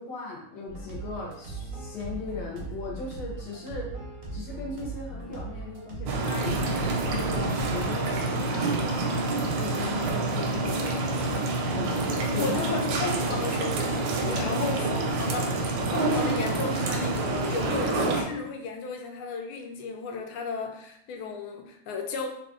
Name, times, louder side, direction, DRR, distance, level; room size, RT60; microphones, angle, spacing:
voice 1, 0.0-3.9 4.3-10.9 11.7-12.7, left 3 dB, 65° left, -2 dB, 1.3 m, -38 dB
sound 1, 0.7-8.1, right 2 dB, 55° right, 0.6 m, -39 dB
sound 2, 6.1-18.2, right 2 dB, 75° right, 1.1 m, -27 dB
voice 2, 12.4-22.3, left 4 dB, 80° left, 4 dB, 1.4 m, -34 dB
3.4 x 2.4 x 3.6 m, 0.71 s
omnidirectional pair, 2.3 m